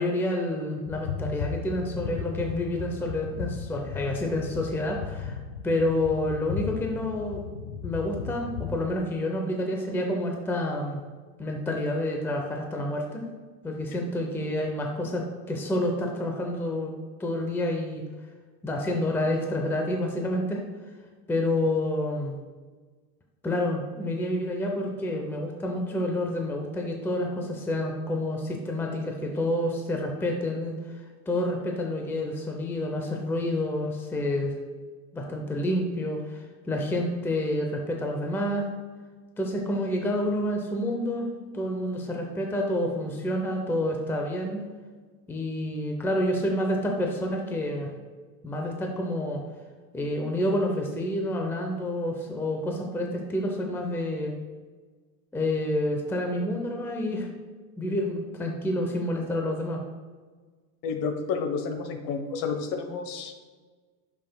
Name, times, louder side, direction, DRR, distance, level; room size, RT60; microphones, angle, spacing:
voice 1, 0.0-5.4 5.6-7.4 7.8-11.0 11.4-13.3 13.6-16.9 17.2-18.0 18.6-20.6 21.3-22.4 23.4-30.7 31.3-34.6 35.1-38.7 39.4-41.3 41.5-44.6 45.3-47.9 48.4-49.4 49.9-54.3 55.3-57.3 57.8-59.8, left 1 dB, 5° left, 1 dB, 0.6 m, -28 dB
sound 1, 0.9-8.9, left 6 dB, 80° left, 1.1 m, -36 dB
voice 2, 60.8-63.6, left 5 dB, 50° left, 6 dB, 1.1 m, -31 dB
10.5 x 5.7 x 2.2 m, 1.4 s
supercardioid pair, 130°, 43 cm